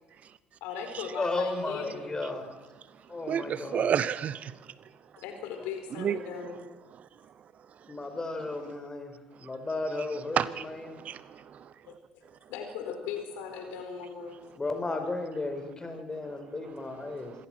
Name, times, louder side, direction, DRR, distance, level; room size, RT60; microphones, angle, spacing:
voice 1, 0.6-2.1 5.2-6.6 11.9-12.0 12.5-14.4, left 7 dB, 70° left, 5 dB, 4.3 m, -38 dB
voice 2, 1.1-2.5 3.1-3.9 7.8-9.1 9.4-11.0 14.5-17.3, left 2 dB, 20° left, 6 dB, 4.8 m, -34 dB
voice 3, 3.3-4.5 6.0-6.2 10.4-10.6 11.0-11.4, right 8 dB, 50° right, 18 dB, 0.8 m, -29 dB
26.5 x 17.0 x 6.1 m, 1.2 s
hypercardioid pair, 55°, 3 cm